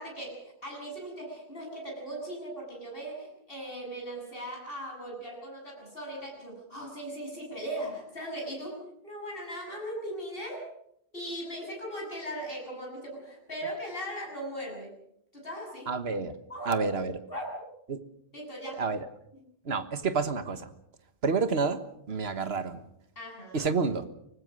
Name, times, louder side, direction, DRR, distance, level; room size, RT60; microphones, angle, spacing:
voice 1, 0.0-10.7 11.1-14.9 15.3-15.9 16.5-16.9 17.3-17.5 18.3-18.8 23.2-23.7, right 1 dB, 60° left, 0 dB, 8.3 m, -38 dB
voice 2, 15.9-16.4 16.7-17.2 17.9-18.0 18.8-19.1 19.6-20.7 21.2-22.9 23.5-24.1, right 4 dB, 70° right, 10 dB, 1.6 m, -29 dB
24.0 x 19.5 x 6.4 m, 0.74 s
omnidirectional pair, 1.1 m